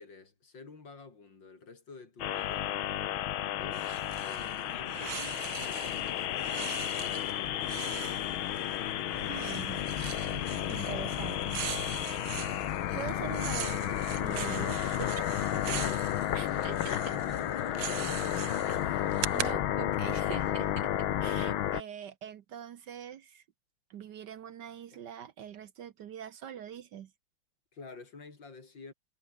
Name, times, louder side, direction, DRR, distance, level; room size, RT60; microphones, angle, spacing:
voice 1, 0.0-2.8 3.6-3.9 4.2-7.8 12.7-13.0 15.5-19.3 24.9-25.0 27.7-28.9, left 4 dB, 65° left, 4.3 m, -49 dB
sound 1, 2.2-21.8, left 12 dB, 80° left, 1.8 m, -32 dB
sound 2, 3.7-19.5, right 13 dB, 80° right, 1.7 m, -42 dB
voice 2, 9.3-9.9 10.2-11.6 12.5-15.3 16.3-17.0 18.9-19.0 19.3-20.9 21.2-23.4 23.9-27.1, right 9 dB, 60° right, 1.4 m, -43 dB
omnidirectional pair, 2.2 m